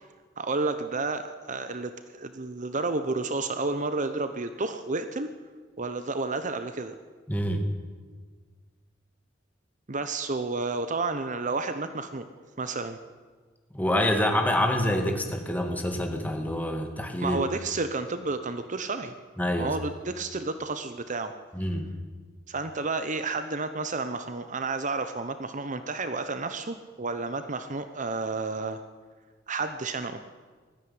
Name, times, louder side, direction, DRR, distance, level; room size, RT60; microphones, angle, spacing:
voice 1, 0.4-5.3 5.8-6.9 9.9-12.3 12.6-13.0 17.2-19.1 19.6-21.3 22.5-28.8 29.5-30.2, right 3 dB, 40° right, 9 dB, 1.0 m, -31 dB
voice 2, 7.3-7.7 13.7-17.4 19.4-19.7 21.5-21.9, left 1 dB, 10° left, 3 dB, 2.4 m, -26 dB
19.0 x 14.5 x 9.7 m, 1.5 s
head